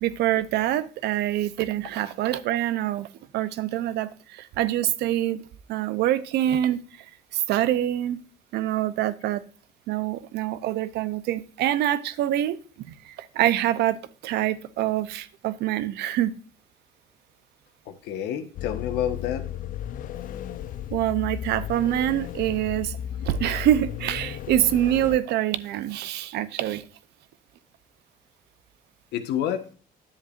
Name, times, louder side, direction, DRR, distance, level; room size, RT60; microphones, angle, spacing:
voice 1, 0.0-3.1 3.3-5.4 5.7-6.8 7.3-8.2 8.5-9.4 9.9-12.6 13.0-14.0 14.2-16.3 20.9-23.0 23.2-26.8, right 12 dB, 80° right, 15 dB, 0.7 m, -25 dB
voice 2, 17.8-19.5 29.1-29.7, left 10 dB, 85° left, 9 dB, 1.3 m, -29 dB
sound 1, 18.6-25.2, left 10 dB, 55° left, 0.4 m, -34 dB
10.5 x 7.4 x 2.6 m, 0.38 s
cardioid pair, 110°, 17 cm